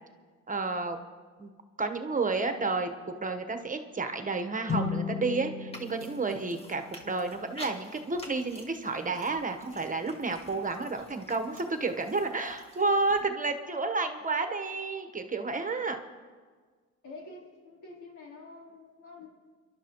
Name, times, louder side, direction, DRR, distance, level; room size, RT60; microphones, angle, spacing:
voice 1, 0.5-1.0 1.4-1.5 1.8-2.9 3.2-16.0, right 3 dB, 25° right, 6 dB, 1.1 m, -31 dB
sound 1, 4.7-8.2, left 6 dB, 35° left, 1.7 m, -37 dB
sound 2, 5.7-13.2, equal, 20° left, 2.1 m, -50 dB
voice 2, 17.0-19.3, left 3 dB, 80° left, -3 dB, 3.6 m, -47 dB
29.0 x 11.5 x 3.0 m, 1.5 s
cardioid pair, 90°, 30 cm